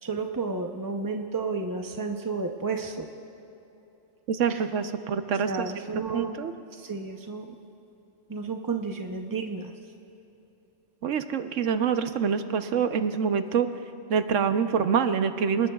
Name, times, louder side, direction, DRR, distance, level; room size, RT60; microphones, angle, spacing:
voice 1, 0.0-3.1 4.5-4.6 5.4-6.4 6.8-7.5 8.3-9.7, right 4 dB, 25° right, 3 dB, 0.4 m, -32 dB
voice 2, 4.3-5.7 6.1-6.5 11.0-13.7 14.1-15.7, right 7 dB, 70° right, 9 dB, 1.1 m, -26 dB
28.0 x 19.5 x 2.3 m, 2.9 s
omnidirectional pair, 1.3 m